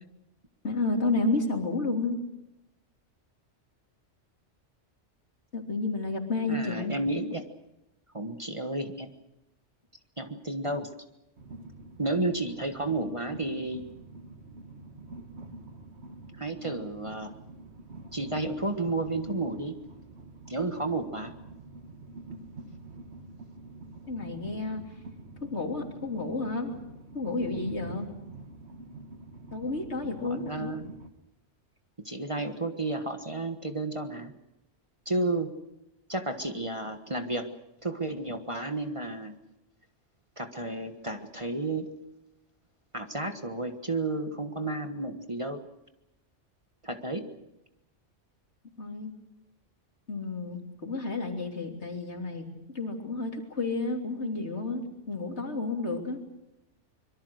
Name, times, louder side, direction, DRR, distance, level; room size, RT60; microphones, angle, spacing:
voice 1, 0.6-2.2 5.5-6.9 24.1-24.8 25.5-26.7 27.1-28.1 29.5-30.7 48.8-49.1 50.1-56.2, left 3 dB, 65° left, 3 dB, 3.5 m, -31 dB
voice 2, 6.5-7.4 8.1-9.1 10.2-10.9 12.0-13.8 16.4-17.3 18.1-19.8 20.5-21.3 30.2-30.9 32.0-34.3 35.0-35.5 36.1-37.5 37.8-39.3 40.4-41.9 42.9-45.6 46.8-47.3, right 2 dB, 25° right, 6 dB, 1.5 m, -32 dB
Train, 11.4-31.1, right 2 dB, 60° right, 2.2 m, -46 dB
25.5 x 23.0 x 6.5 m, 0.90 s
omnidirectional pair, 1.3 m